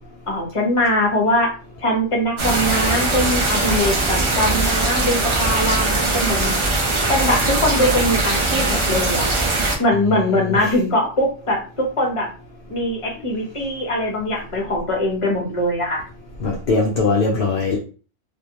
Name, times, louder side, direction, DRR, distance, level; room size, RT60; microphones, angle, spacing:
voice 1, 0.3-1.5 1.8-6.6 7.1-9.3 9.6-12.3 12.7-16.0, left 1 dB, 30° left, -2 dB, 0.9 m, -21 dB
sound 1, 2.4-9.8, right 2 dB, 50° right, 0.3 m, -20 dB
voice 2, 16.4-17.8, left 3 dB, 60° left, -1 dB, 0.7 m, -20 dB
2.5 x 2.1 x 2.8 m, 0.36 s
omnidirectional pair, 1.2 m